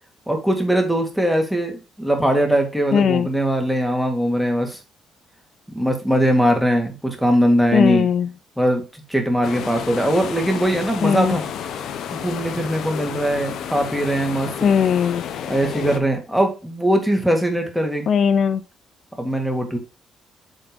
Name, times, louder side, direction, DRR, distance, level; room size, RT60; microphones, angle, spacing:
voice 1, 0.3-4.8 5.8-8.1 8.6-11.4 12.1-14.5 15.5-18.1 19.2-19.8, equal, ahead, 4 dB, 2.1 m, -21 dB
voice 2, 2.9-3.3 7.7-8.3 11.0-11.4 14.6-15.3 18.1-18.6, left 7 dB, 60° left, 13 dB, 0.4 m, -18 dB
sound 1, 9.4-16.0, left 8 dB, 80° left, 0.9 m, -31 dB
8.0 x 3.6 x 5.1 m, 0.31 s
cardioid pair, 90°, 0 cm